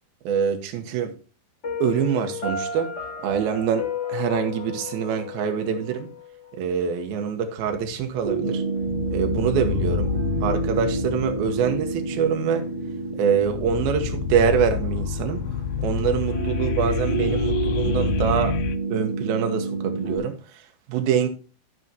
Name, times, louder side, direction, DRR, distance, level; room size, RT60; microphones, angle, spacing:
voice 1, 0.2-1.1 1.8-2.9 3.2-6.1 6.5-8.6 9.1-10.1 10.4-12.7 13.2-15.4 15.8-18.6 18.9-20.6 20.9-21.3, right 7 dB, 75° right, 2.9 m, -25 dB
Piano, 1.6-6.6, left 5 dB, 25° left, 1.7 m, -33 dB
sound 1, 7.6-8.4 8.8-18.8, left 8 dB, 80° left, 2.4 m, -29 dB
sound 2, 8.2-20.2, right 3 dB, 10° right, 3.2 m, -29 dB
14.0 x 6.0 x 2.7 m
omnidirectional pair, 4.4 m